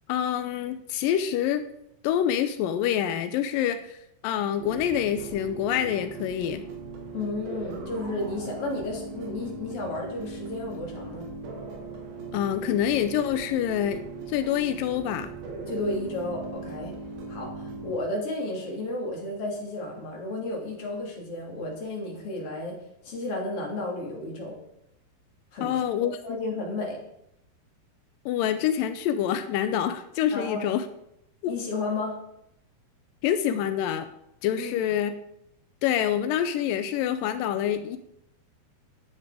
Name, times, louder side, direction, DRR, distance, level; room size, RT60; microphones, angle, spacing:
voice 1, 0.1-1.6 2.0-4.0 4.2-6.6 12.3-14.0 14.3-15.3 25.6-26.2 28.3-30.9 31.4-31.5 33.2-34.1 34.4-35.1 35.8-38.0, left 10 dB, 85° left, 9 dB, 2.0 m, -26 dB
sound 1, 4.6-18.0, right 3 dB, 65° right, 3.6 m, -39 dB
voice 2, 7.1-11.3 15.7-16.9 17.3-22.8 23.0-24.6 25.5-25.8 26.2-27.0 30.3-30.7 31.5-32.2 34.6-34.7, left 2 dB, 35° left, -1 dB, 3.5 m, -32 dB
12.5 x 9.8 x 5.0 m, 0.79 s
omnidirectional pair, 4.8 m